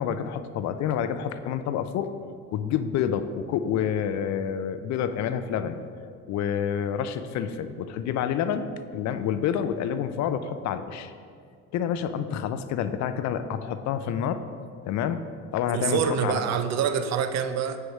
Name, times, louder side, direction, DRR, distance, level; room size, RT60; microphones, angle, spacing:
voice 1, 0.0-2.1 2.5-5.8 6.3-11.1 11.7-14.4 14.8-15.2 15.5-16.4, left 8 dB, 60° left, 10 dB, 0.5 m, -28 dB
voice 2, 15.7-17.8, right 7 dB, 60° right, 9 dB, 0.5 m, -26 dB
4.9 x 4.5 x 5.3 m, 2.2 s
cardioid pair, 95°, 31 cm